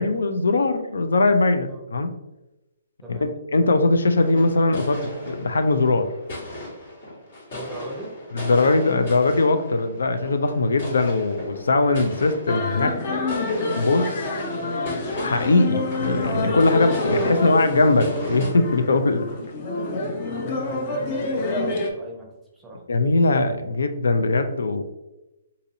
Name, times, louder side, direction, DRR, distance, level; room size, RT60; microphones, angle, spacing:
voice 1, 0.0-2.1 3.1-6.1 8.4-12.9 13.8-14.1 15.1-19.3 22.9-24.8, left 3 dB, 85° left, 8 dB, 0.4 m, -21 dB
sound 1, 4.0-18.5, left 1 dB, 55° left, 1.3 m, -37 dB
voice 2, 7.5-8.1 20.6-22.8, right 1 dB, 5° right, -3 dB, 0.7 m, -39 dB
sound 2, 12.5-21.9, left 2 dB, 35° left, 0.5 m, -27 dB
3.9 x 2.7 x 2.6 m, 0.95 s
hypercardioid pair, 155°, 0 cm